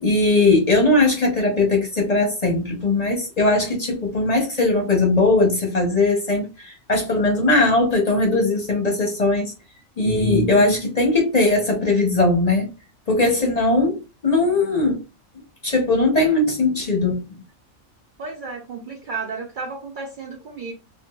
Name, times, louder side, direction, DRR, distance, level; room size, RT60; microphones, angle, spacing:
voice 1, 0.0-9.5 10.0-12.7 13.1-15.0 15.6-17.2, left 2 dB, 40° left, 1 dB, 0.7 m, -19 dB
voice 2, 18.2-20.7, right 4 dB, 80° right, 3 dB, 0.4 m, -33 dB
3.6 x 2.6 x 2.2 m, 0.30 s
omnidirectional pair, 1.4 m